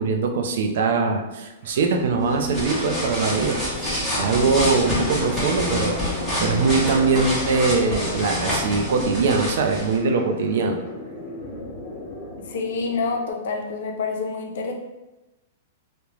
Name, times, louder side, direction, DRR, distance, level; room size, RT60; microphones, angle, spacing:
voice 1, 0.0-6.0 6.4-10.8, right 4 dB, 65° right, 4 dB, 0.4 m, -22 dB
sound 1, 1.6-13.3, left 2 dB, 35° left, 0.7 m, -40 dB
Drying hands with paper, 2.2-10.0, left 1 dB, 5° left, 0.8 m, -27 dB
voice 2, 12.4-14.7, left 4 dB, 70° left, 2 dB, 0.5 m, -27 dB
2.4 x 2.1 x 3.0 m, 1.0 s
hypercardioid pair, 155°, 0 cm